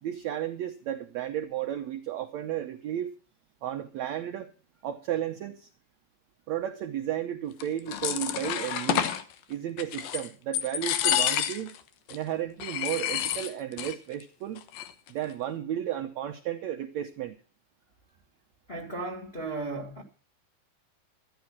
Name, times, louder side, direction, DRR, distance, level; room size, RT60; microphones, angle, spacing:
voice 1, 0.0-3.1 3.6-4.5 4.8-5.7 6.5-9.1 9.5-11.8 12.1-14.6 15.1-17.4, right 11 dB, 90° right, 1.5 m, -33 dB
sound 1, 7.6-9.2 9.8-10.3 10.5-11.8 12.1-12.2 12.6-14.0 14.2-14.3 14.6-15.1, left 11 dB, 75° left, 2.9 m, -29 dB
voice 2, 18.7-20.0, right 3 dB, 30° left, 1.1 m, -35 dB
12.5 x 10.5 x 5.9 m
omnidirectional pair, 4.3 m